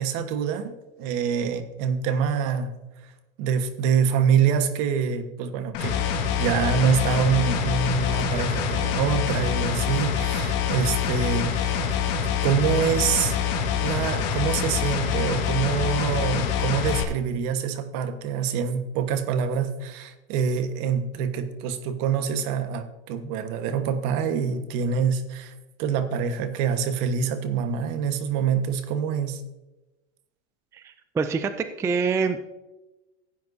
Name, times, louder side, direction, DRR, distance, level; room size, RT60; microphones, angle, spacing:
voice 1, 0.0-2.7 3.4-6.0 6.4-11.8 12.2-13.4 13.8-25.5 25.8-29.4, right 7 dB, 55° right, 9 dB, 1.3 m, -25 dB
sound 1, 5.7-17.0, left 7 dB, 60° left, 1.9 m, -25 dB
voice 2, 30.7-32.4, right 5 dB, 10° right, 10 dB, 0.3 m, -26 dB
15.5 x 9.1 x 2.7 m, 1.1 s
supercardioid pair, 125°, 35 cm